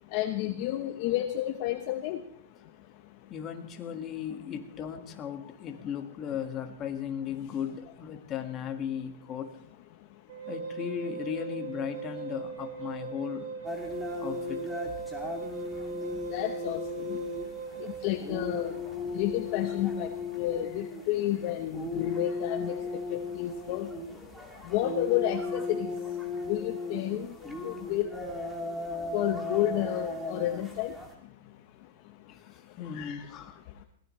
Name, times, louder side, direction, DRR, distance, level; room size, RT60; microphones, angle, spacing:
voice 1, 0.1-2.2 16.3-16.8 17.1-17.2 18.0-18.7 19.1-20.1 20.4-22.7 23.1-23.9 24.7-25.9 26.5-27.3 27.6-28.1 29.1-30.9 32.9-33.2, left 13 dB, 45° left, 6 dB, 1.0 m, -30 dB
voice 2, 3.3-9.5 10.5-13.5 14.2-14.9 17.3-17.4 32.3-33.8, left 8 dB, 25° left, 4 dB, 1.8 m, -37 dB
Wind instrument woodwind instrument, 10.3-18.1, right 6 dB, 70° right, 3.3 m, -39 dB
sound 1, 13.6-31.1, left 3 dB, 5° right, 2.7 m, -37 dB
23.5 x 18.0 x 3.3 m, 0.69 s
hypercardioid pair, 150°, 0 cm